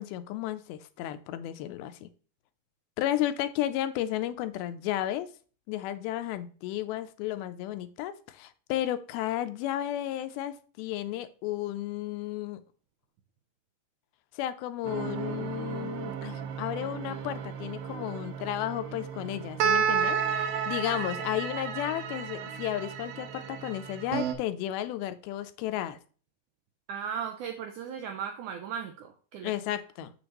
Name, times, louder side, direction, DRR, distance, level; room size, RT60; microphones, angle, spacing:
voice 1, 0.0-2.1 3.0-5.3 5.7-12.6 14.4-26.0 29.4-30.1, left 13 dB, 90° left, 2.5 m, -33 dB
sound 1, 14.8-24.3, right 7 dB, 75° right, 2.2 m, -32 dB
voice 2, 26.9-29.6, right 7 dB, 90° right, 1.7 m, -37 dB
7.0 x 6.9 x 2.9 m
omnidirectional pair, 4.2 m